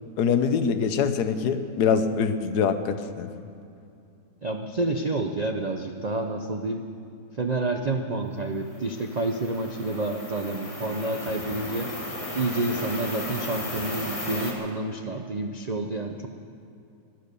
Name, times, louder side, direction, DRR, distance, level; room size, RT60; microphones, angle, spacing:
voice 1, 0.2-3.3, left 6 dB, 75° left, 10 dB, 1.3 m, -24 dB
voice 2, 4.4-6.9 7.3-11.9 12.3-16.3, right 2 dB, 55° right, 4 dB, 0.4 m, -29 dB
sound 1, 8.6-14.5, left 1 dB, 20° left, 1.9 m, -35 dB
15.0 x 11.5 x 6.8 m, 2.5 s
omnidirectional pair, 1.8 m